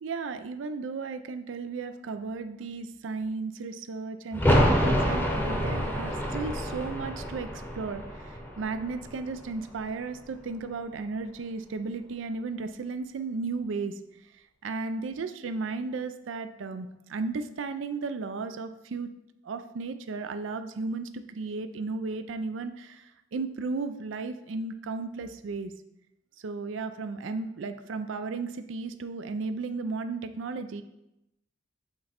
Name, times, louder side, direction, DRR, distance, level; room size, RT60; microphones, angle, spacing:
voice 1, 0.0-14.0 14.6-19.1 19.4-25.7 26.4-30.8, right 4 dB, 80° right, 10 dB, 0.4 m, -34 dB
sound 1, 4.3-9.9 10.2-10.3, equal, 10° left, 0.8 m, -27 dB
7.9 x 3.2 x 4.3 m, 0.87 s
head